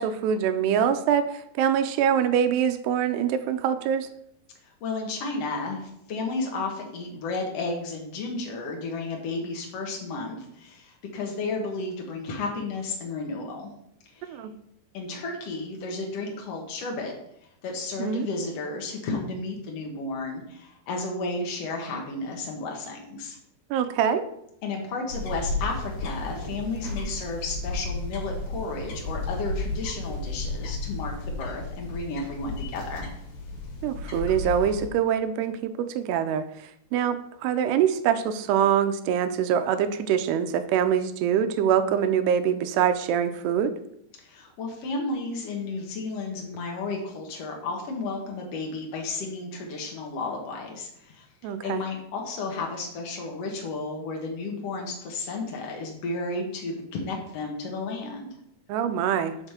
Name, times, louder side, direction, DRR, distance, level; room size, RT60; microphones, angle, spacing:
voice 1, 0.0-4.1 14.2-14.5 18.0-18.3 23.7-24.3 33.8-36.5 36.9-43.7 51.4-51.8 58.7-59.4, right 8 dB, 80° right, 9 dB, 2.5 m, -24 dB
voice 2, 4.6-13.7 14.1-14.4 14.9-17.1 17.6-23.4 24.6-33.1 44.2-58.3, left 3 dB, 90° left, 0 dB, 1.4 m, -33 dB
sound 1, 25.1-34.9, left 2 dB, 60° left, 2.7 m, -33 dB
6.0 x 5.4 x 6.5 m, 0.76 s
omnidirectional pair, 4.9 m